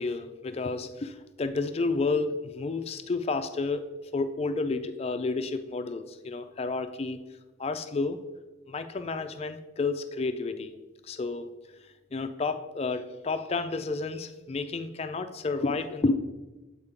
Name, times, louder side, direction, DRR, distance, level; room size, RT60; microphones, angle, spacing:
voice 1, 0.0-7.2 7.6-8.2 8.7-10.8 11.0-11.5 12.1-16.2, left 3 dB, 30° left, 9 dB, 0.4 m, -31 dB
8.1 x 4.4 x 3.6 m, 1.1 s
head